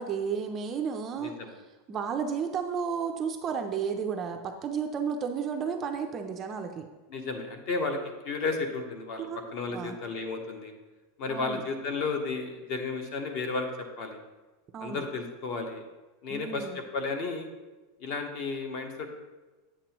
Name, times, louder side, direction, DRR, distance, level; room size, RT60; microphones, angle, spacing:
voice 1, 0.0-1.4 1.9-6.9 9.2-9.4 9.7-10.0 11.3-11.6 14.7-15.0 16.3-16.8, right 6 dB, 20° right, 5 dB, 0.4 m, -32 dB
voice 2, 1.2-1.5 7.1-8.0 8.2-10.7 11.2-13.7 14.0-14.2 14.8-15.8 16.2-17.5 18.0-19.2, left 4 dB, 40° left, 5 dB, 0.9 m, -33 dB
8.4 x 7.4 x 2.9 m, 1.2 s
supercardioid pair, 175°, 0 cm